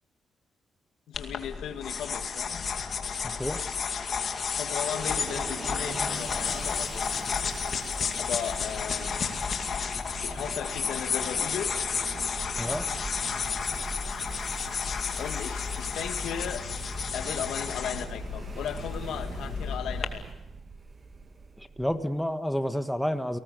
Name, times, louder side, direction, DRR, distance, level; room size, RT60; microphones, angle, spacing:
voice 1, 1.1-2.5 4.5-7.4 8.2-9.4 10.2-11.8 15.2-16.6 17.1-20.2, left 9 dB, 85° left, 8 dB, 1.8 m, -36 dB
sound 1, 1.1-20.0, left 6 dB, 55° left, 2.4 m, -32 dB
voice 2, 3.2-3.6 12.6-12.9 21.8-23.4, equal, 5° left, 9 dB, 1.5 m, -29 dB
sound 2, 4.9-22.2, right 4 dB, 40° right, 1.8 m, -41 dB
29.5 x 19.5 x 6.8 m, 0.90 s
cardioid pair, 80°, 0 cm